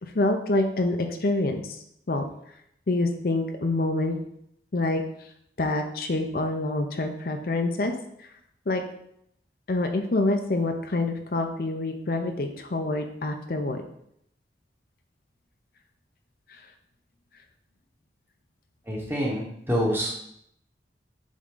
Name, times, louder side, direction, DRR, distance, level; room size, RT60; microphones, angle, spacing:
voice 1, 0.0-2.2 2.9-4.2 4.7-5.0 5.6-7.9 8.2-8.3 8.7-8.8 9.7-13.8, left 2 dB, 55° left, 5 dB, 0.6 m, -26 dB
voice 2, 18.9-20.1, equal, 10° right, -2 dB, 1.1 m, -27 dB
7.5 x 3.6 x 3.7 m, 0.73 s
head